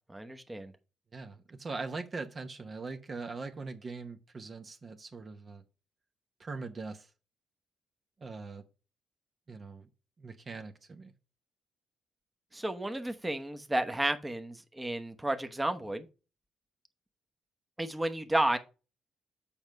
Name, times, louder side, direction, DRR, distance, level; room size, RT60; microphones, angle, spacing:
voice 1, 0.1-0.7 12.5-16.1 17.8-18.6, right 1 dB, 10° right, 1.0 m, -32 dB
voice 2, 1.1-5.6 6.4-7.1 8.2-8.6 9.5-9.9 10.2-11.1, right 4 dB, 40° right, 0.9 m, -41 dB
7.2 x 5.3 x 4.6 m
cardioid pair, 90°, 0 cm